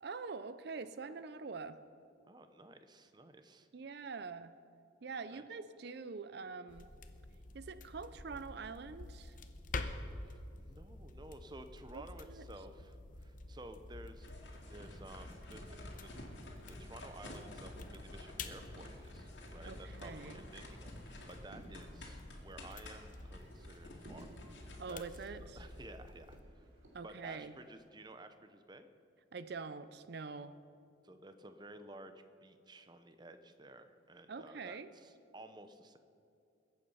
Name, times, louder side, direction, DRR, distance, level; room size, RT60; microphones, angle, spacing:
voice 1, 0.0-1.8 3.7-4.6 5.0-6.9 7.5-9.4 11.9-12.5 19.6-20.4 24.8-25.6 26.9-27.6 29.3-30.5 34.3-34.9, right 4 dB, 55° right, 13 dB, 0.5 m, -45 dB
voice 2, 2.2-3.7 5.3-5.4 10.2-16.1 16.7-25.0 25.6-26.7 27.0-28.9 31.0-32.1 32.4-36.0, right 1 dB, 20° right, 9 dB, 0.7 m, -54 dB
sound 1, 6.7-26.4, left 2 dB, 40° left, 0.8 m, -49 dB
sound 2, 14.2-25.8, left 1 dB, 65° left, 2.5 m, -52 dB
sound 3, 17.9-27.9, right 1 dB, 80° right, 2.7 m, -61 dB
21.5 x 8.5 x 5.6 m, 2.6 s
head